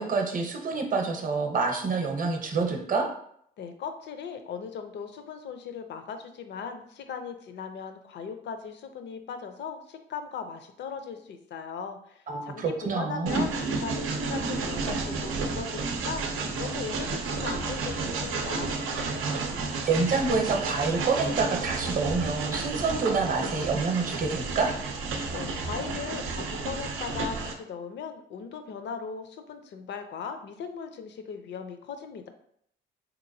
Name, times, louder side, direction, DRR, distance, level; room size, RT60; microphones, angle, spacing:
voice 1, 0.0-3.1 12.3-13.5 19.8-24.7, right 4 dB, 45° right, 2 dB, 0.7 m, -27 dB
voice 2, 3.6-18.0 18.2-18.7 25.3-32.3, left 6 dB, 60° left, 7 dB, 0.5 m, -38 dB
Train, 13.3-27.5, right 4 dB, 90° right, 0.5 m, -31 dB
3.7 x 2.9 x 2.6 m, 0.68 s
cardioid pair, 90°, 20 cm